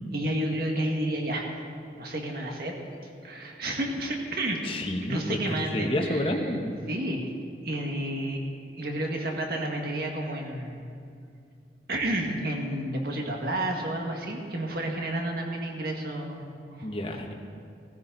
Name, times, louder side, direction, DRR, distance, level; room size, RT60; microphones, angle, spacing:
voice 1, 0.1-1.5 2.0-2.7 3.2-4.6 5.1-6.6 6.9-7.3 7.6-10.9 11.9-16.4 16.8-17.2, right 1 dB, 55° right, 1 dB, 1.8 m, -31 dB
voice 2, 4.6-5.4 5.7-6.7 16.8-17.3, left 1 dB, 30° left, 2 dB, 1.1 m, -29 dB
16.5 x 15.0 x 4.0 m, 2.4 s
head